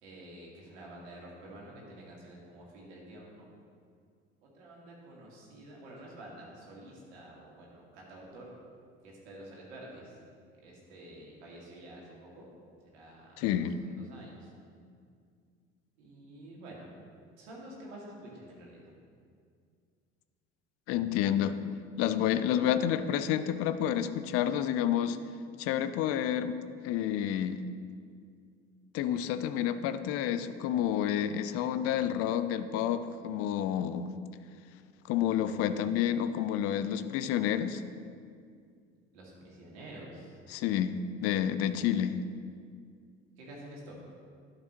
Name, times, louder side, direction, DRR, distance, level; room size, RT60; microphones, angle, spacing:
voice 1, 0.0-3.5 4.4-8.5 9.0-10.2 10.6-12.4 12.9-13.3 13.8-14.5 16.0-16.9 17.4-18.9 39.1-40.4 43.4-43.9, right 1 dB, 65° right, -3 dB, 2.1 m, -49 dB
voice 2, 13.4-13.8 20.9-21.5 22.0-25.2 25.6-26.6 26.8-27.6 28.9-34.1 35.1-37.8 40.5-42.2, left 10 dB, 40° left, 11 dB, 0.5 m, -29 dB
11.5 x 6.8 x 3.0 m, 2.2 s
figure-of-eight pair, 60°, 37 cm